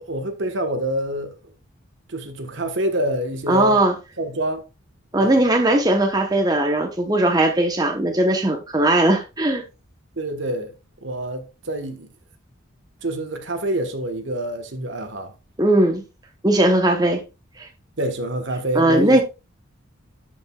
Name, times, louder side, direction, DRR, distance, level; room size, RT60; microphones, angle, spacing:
voice 1, 0.0-1.3 2.1-3.8 4.2-4.6 5.2-5.4 10.1-10.7 11.0-12.1 13.0-15.3 18.0-19.2, right 1 dB, 60° right, 1.3 m, -26 dB
voice 2, 3.5-3.9 5.1-9.6 15.6-16.0 16.4-17.2 17.6-17.7 18.7-19.2, right 1 dB, 20° right, 1.0 m, -18 dB
12.5 x 5.3 x 2.4 m
head